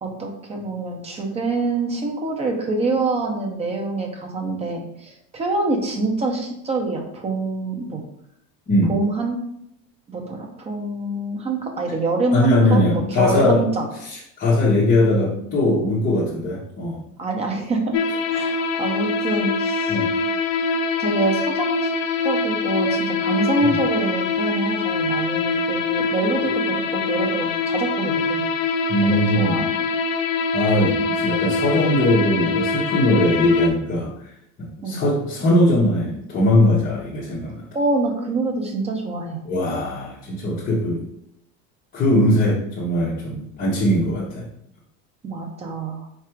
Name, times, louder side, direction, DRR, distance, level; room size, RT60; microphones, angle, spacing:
voice 1, 0.0-8.0 8.9-9.4 10.1-13.9 17.2-17.9 18.3-20.0 21.0-21.9 22.2-28.4 29.0-29.7 30.4-30.5 34.8-35.0 37.7-39.4 45.2-46.1, right 2 dB, 15° right, 2 dB, 0.5 m, -25 dB
voice 2, 12.3-13.6 14.0-17.0 19.9-20.1 23.7-23.8 28.9-29.6 30.5-34.3 34.8-37.6 39.4-41.0 41.9-44.4, left 1 dB, 20° left, -8 dB, 0.8 m, -20 dB
sound 1, 17.9-33.7, left 4 dB, 75° left, 0.7 m, -24 dB
4.6 x 2.5 x 4.4 m, 0.75 s
cardioid pair, 155°, 38 cm